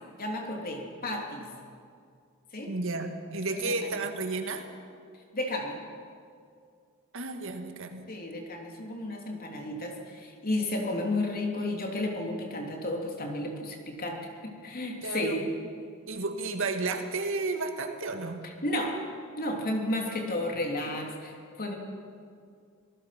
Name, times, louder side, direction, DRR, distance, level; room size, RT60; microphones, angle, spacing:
voice 1, 0.2-1.5 2.5-2.7 3.5-4.0 5.3-5.8 8.1-15.4 18.4-19.0 19.4-21.8, left 1 dB, 45° left, 1 dB, 3.2 m, -33 dB
voice 2, 2.7-4.6 7.1-8.1 15.0-15.4 16.1-18.4, right 3 dB, 65° right, 5 dB, 1.9 m, -32 dB
26.0 x 18.5 x 6.0 m, 2.3 s
head